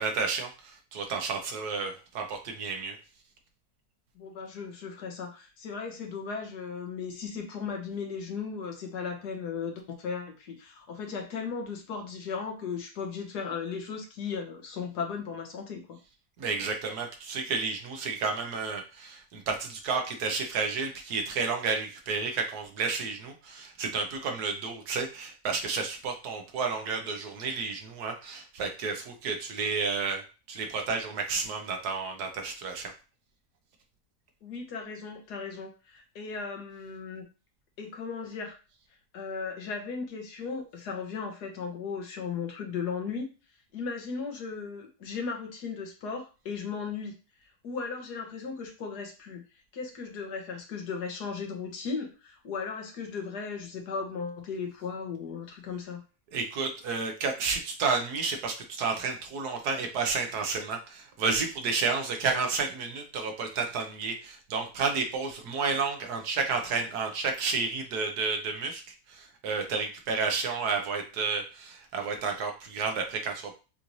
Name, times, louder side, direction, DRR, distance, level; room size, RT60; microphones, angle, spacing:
voice 1, 0.0-3.0 16.4-30.2 30.5-32.9 56.3-68.8 69.1-73.5, right 4 dB, 80° right, 4 dB, 1.4 m, -31 dB
voice 2, 4.2-16.0 34.4-37.2 37.8-38.6 39.1-43.3 43.7-47.1 47.6-49.4 49.7-56.0, left 5 dB, 85° left, 3 dB, 1.7 m, -36 dB
6.6 x 2.6 x 3.1 m, 0.32 s
omnidirectional pair, 1.7 m